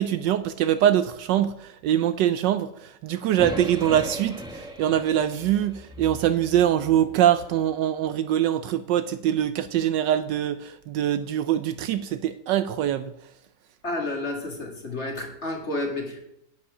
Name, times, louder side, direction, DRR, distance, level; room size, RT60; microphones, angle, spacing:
voice 1, 0.0-13.1, right 11 dB, 75° right, 11 dB, 1.2 m, -23 dB
sound 1, 3.4-7.6, right 1 dB, 5° right, 0.7 m, -38 dB
voice 2, 13.8-16.2, left 2 dB, 35° left, 1 dB, 2.0 m, -30 dB
11.0 x 8.7 x 4.9 m, 0.78 s
omnidirectional pair, 2.1 m